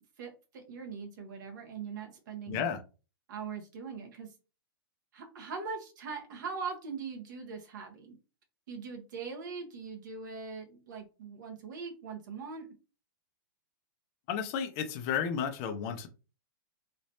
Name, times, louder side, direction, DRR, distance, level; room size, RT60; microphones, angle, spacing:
voice 1, 0.2-2.7 3.3-4.3 5.1-8.2 8.7-12.7, right 5 dB, 55° right, 1.2 m, -41 dB
voice 2, 2.5-2.8 14.3-16.1, left 7 dB, 25° left, 0.5 m, -32 dB
3.2 x 3.0 x 2.7 m
hypercardioid pair, 170°, 12 cm